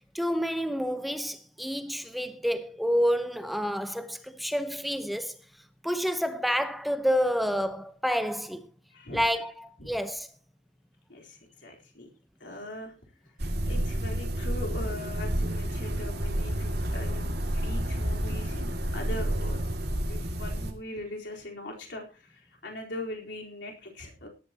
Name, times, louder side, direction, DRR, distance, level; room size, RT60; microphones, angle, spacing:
voice 1, 0.1-5.4 5.8-8.7 9.1-10.3, equal, ahead, 0.9 m, -29 dB
voice 2, 8.9-9.2 9.8-9.9 11.1-12.1 12.4-12.9 13.7-19.7 20.1-24.3, left 1 dB, 60° left, 4.1 m, -41 dB
sound 1, 13.4-20.7, equal, 55° right, 2.3 m, -30 dB
18.0 x 12.5 x 2.9 m
head